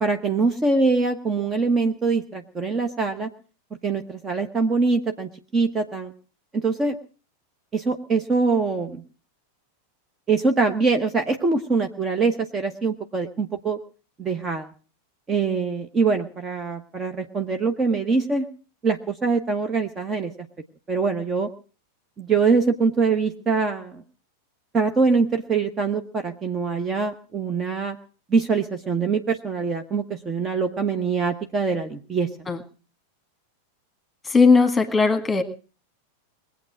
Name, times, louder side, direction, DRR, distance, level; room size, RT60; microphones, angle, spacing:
voice 1, 0.0-3.3 3.8-6.1 6.5-7.0 7.7-9.0 10.3-13.8 14.2-14.7 15.3-18.5 18.8-20.3 20.9-21.5 22.2-24.0 24.7-28.0 28.3-32.3, right 4 dB, 20° right, 6 dB, 1.1 m, -23 dB
voice 2, 34.2-35.4, left 4 dB, 10° left, 9 dB, 1.9 m, -18 dB
21.5 x 8.2 x 6.2 m, 0.39 s
figure-of-eight pair, 90°, 0 cm